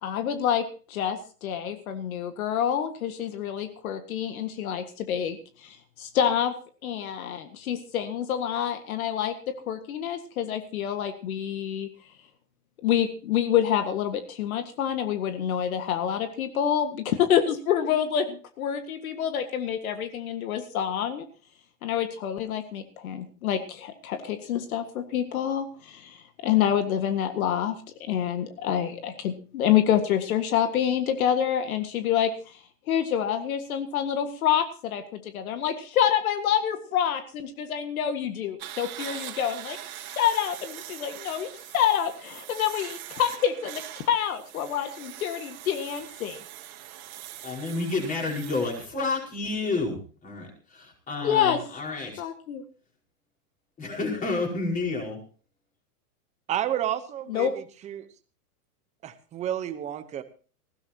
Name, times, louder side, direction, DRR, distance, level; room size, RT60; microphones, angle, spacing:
voice 1, 0.0-5.4 5.6-6.5 6.8-9.4 9.7-11.9 12.8-21.3 21.8-32.3 32.9-39.8 40.1-41.5 41.7-43.8 44.1-46.4 51.2-51.6 52.2-52.6 57.3-57.5, left 9 dB, 65° left, 8 dB, 1.8 m, -27 dB
sound 1, 38.6-48.9, right 12 dB, 65° right, 2.5 m, -42 dB
voice 2, 47.4-52.2 53.8-55.2, left 3 dB, 15° left, 0 dB, 5.1 m, -30 dB
voice 3, 56.5-58.1 59.0-60.2, right 11 dB, 15° right, 11 dB, 0.9 m, -31 dB
20.0 x 16.0 x 2.9 m, 0.38 s
supercardioid pair, 160°, 46 cm